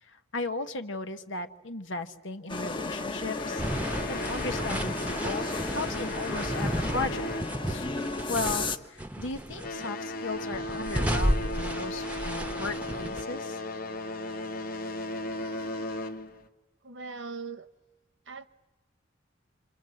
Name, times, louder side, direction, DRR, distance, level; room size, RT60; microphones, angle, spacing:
voice 1, 0.0-3.6 4.1-7.3 7.7-7.9 8.3-13.6, left 3 dB, 90° left, 8 dB, 1.3 m, -36 dB
sound 1, 2.5-8.8, left 2 dB, 25° left, 1.0 m, -34 dB
sound 2, 3.3-8.2 8.5-8.8 9.4-16.5, left 2 dB, 50° left, 1.3 m, -36 dB
sound 3, 3.6-8.7 9.0-9.9 10.4-13.2, equal, 10° right, 0.9 m, -33 dB
voice 2, 16.8-17.7 18.3-18.5, right 4 dB, 75° right, 11 dB, 1.2 m, -39 dB
26.5 x 25.5 x 7.8 m, 1.1 s
head